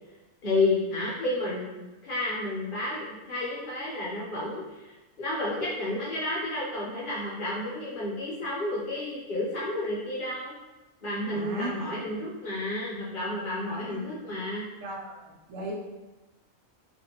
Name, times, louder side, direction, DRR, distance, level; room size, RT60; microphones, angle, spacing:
voice 1, 0.4-10.5 11.0-14.6, left 2 dB, 50° left, -6 dB, 0.8 m, -31 dB
voice 2, 11.3-11.9 13.6-14.2 14.8-15.2 15.5-15.7, right 1 dB, 85° right, -2 dB, 1.0 m, -37 dB
2.5 x 2.5 x 2.7 m, 1.1 s
omnidirectional pair, 1.3 m